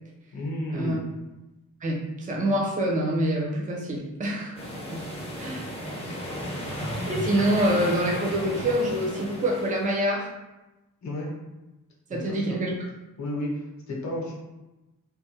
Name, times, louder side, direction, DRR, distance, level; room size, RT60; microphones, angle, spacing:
voice 1, 0.3-1.0 11.0-11.3 12.1-12.6 13.2-14.3, left 1 dB, 60° left, -2 dB, 0.8 m, -32 dB
voice 2, 1.8-4.5 4.9-5.0 5.4-5.7 6.0-6.1 7.1-10.2 12.1-12.7, right 1 dB, 25° right, -2 dB, 0.5 m, -26 dB
sound 1, 4.6-9.9, equal, 15° left, 0.6 m, -34 dB
3.1 x 2.1 x 3.1 m, 1.0 s
wide cardioid pair, 160°, 33 cm